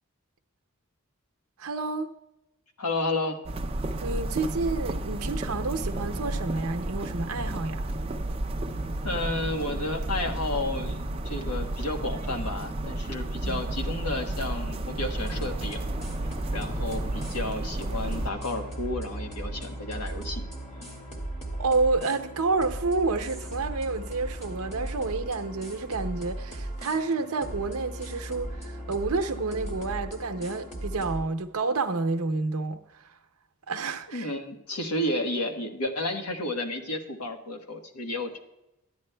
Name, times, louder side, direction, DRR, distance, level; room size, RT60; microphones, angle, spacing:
voice 1, 1.6-2.1 4.0-7.9 13.4-13.6 21.6-33.2 33.7-34.3, right 3 dB, 80° right, 0.7 m, -29 dB
voice 2, 2.8-3.4 9.0-15.8 16.5-20.4 34.1-38.4, left 1 dB, 90° left, 1.3 m, -32 dB
sound 1, 3.4-18.3, right 1 dB, 25° right, 0.4 m, -32 dB
sound 2, 15.2-31.3, right 1 dB, 30° left, 1.9 m, -37 dB
13.5 x 10.5 x 2.2 m
head